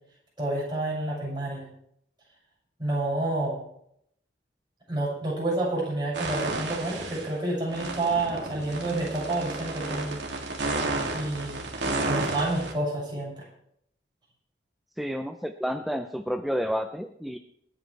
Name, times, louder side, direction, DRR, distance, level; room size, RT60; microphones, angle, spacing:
voice 1, 0.4-1.7 2.8-3.6 4.9-10.2 11.1-13.4, right 2 dB, 25° right, -5 dB, 7.1 m, -29 dB
sound 1, 6.1-7.3 7.7-12.7, right 2 dB, 70° right, 2.8 m, -32 dB
voice 2, 15.0-17.4, equal, ahead, 6 dB, 0.6 m, -30 dB
28.0 x 9.3 x 3.4 m, 0.72 s
head